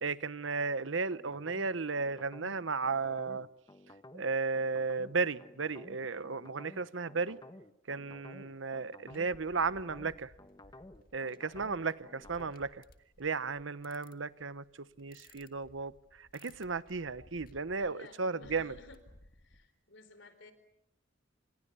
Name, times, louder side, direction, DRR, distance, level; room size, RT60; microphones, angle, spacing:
voice 1, 0.0-3.5 4.1-7.4 7.9-10.3 11.1-12.8 13.2-18.7, right 4 dB, 80° right, 15 dB, 1.0 m, -35 dB
sound 1, 1.1-12.5, left 1 dB, 20° left, 1.3 m, -53 dB
sound 2, 9.1-19.7, left 1 dB, 50° left, 1.8 m, -60 dB
voice 2, 17.7-19.0 19.4-20.5, left 2 dB, 70° left, 11 dB, 4.2 m, -54 dB
29.5 x 27.0 x 7.0 m, 0.80 s
head